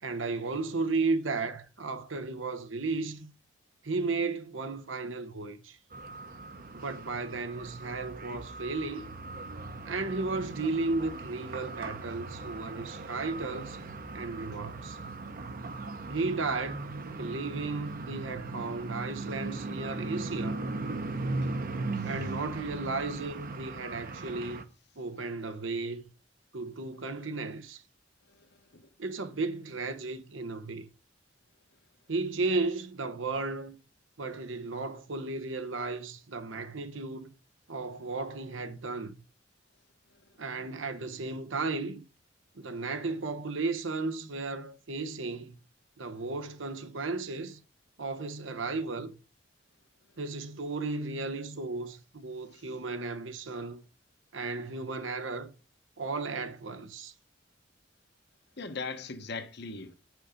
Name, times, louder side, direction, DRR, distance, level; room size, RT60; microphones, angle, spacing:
voice 1, 0.0-3.3 3.8-5.8 6.7-9.2 9.8-13.8 14.1-15.0 16.1-16.8 17.2-20.7 22.0-24.6 25.0-26.0 26.5-27.8 29.0-30.9 32.1-33.8 34.2-37.3 37.7-39.1 40.4-42.0 42.5-45.5 46.0-47.6 48.0-49.1 50.2-53.8 54.3-55.5 56.0-57.1, right 3 dB, 90° right, 1.0 m, -34 dB
sound 1, 5.9-24.6, right 3 dB, 50° right, 0.8 m, -38 dB
voice 2, 28.3-28.8 58.6-59.9, left 4 dB, 60° left, 1.1 m, -40 dB
9.8 x 6.2 x 5.1 m
head